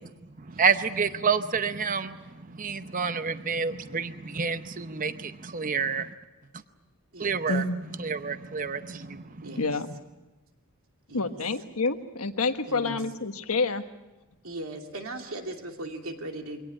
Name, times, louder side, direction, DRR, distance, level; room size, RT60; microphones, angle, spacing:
voice 1, 0.4-2.2 2.5-6.1 7.2-7.6 8.0-9.3, right 5 dB, 40° right, 10 dB, 0.8 m, -28 dB
voice 2, 7.5-8.0 9.6-9.9 11.1-13.8, left 3 dB, 90° left, 7 dB, 1.4 m, -28 dB
voice 3, 9.4-9.8 11.1-11.4 12.7-13.0 14.4-16.6, right 2 dB, 70° right, 3 dB, 2.8 m, -38 dB
23.5 x 18.0 x 8.8 m, 1.1 s
head